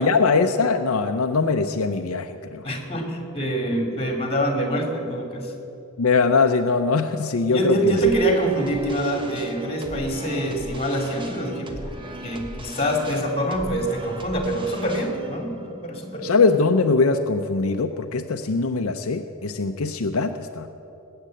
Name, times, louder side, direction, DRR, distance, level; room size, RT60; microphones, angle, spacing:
voice 1, 0.0-2.6 6.0-8.0 16.2-20.7, left 4 dB, 75° left, 6 dB, 0.6 m, -21 dB
voice 2, 2.6-5.5 7.5-12.0 12.2-16.3, right 1 dB, 25° left, 3 dB, 2.4 m, -25 dB
sound 1, 8.0-17.1, right 1 dB, 25° right, 1.2 m, -39 dB
20.0 x 8.8 x 7.6 m, 2.8 s
head